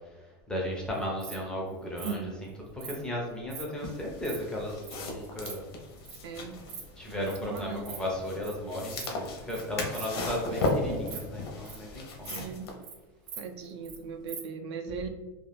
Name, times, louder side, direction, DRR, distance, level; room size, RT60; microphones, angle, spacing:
voice 1, 0.5-2.2 2.7-5.7 7.0-12.4, left 1 dB, 5° left, -2 dB, 0.3 m, -35 dB
Insect, 0.9-1.4 2.0-2.1 2.8-3.0 3.5-3.6 4.0-4.4 4.8-4.9 5.2-5.5 6.0-6.2 6.5-6.8 7.1-7.4 7.7-8.0 8.2-8.5 8.9-9.2 9.5-9.6 9.9-10.1 10.4-10.7 11.0-11.9 12.2-12.4 12.7-12.9 13.3-14.0 14.3-14.4, right 6 dB, 50° right, 0.6 m, -42 dB
voice 2, 2.0-2.3 6.2-6.6 7.1-7.9 10.5-10.6 10.9-11.1 12.3-12.7 13.4-15.1, right 5 dB, 90° right, 6 dB, 0.5 m, -38 dB
sound 1, 3.8-12.7, left 2 dB, 70° left, 0.6 m, -36 dB
2.5 x 2.3 x 3.2 m, 1.1 s
supercardioid pair, 170°, 14 cm